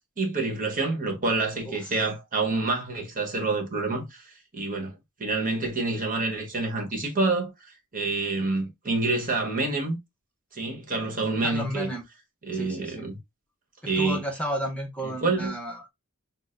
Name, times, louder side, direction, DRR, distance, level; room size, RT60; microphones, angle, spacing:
voice 1, 0.2-4.9 5.2-7.5 7.9-10.0 10.5-11.9 12.4-13.2 13.9-14.2 15.0-15.5, right 3 dB, 40° right, 1.1 m, -27 dB
voice 2, 1.7-2.0 11.4-12.0 12.5-13.0 13.8-15.9, equal, 5° left, 0.6 m, -33 dB
6.1 x 2.0 x 2.5 m
head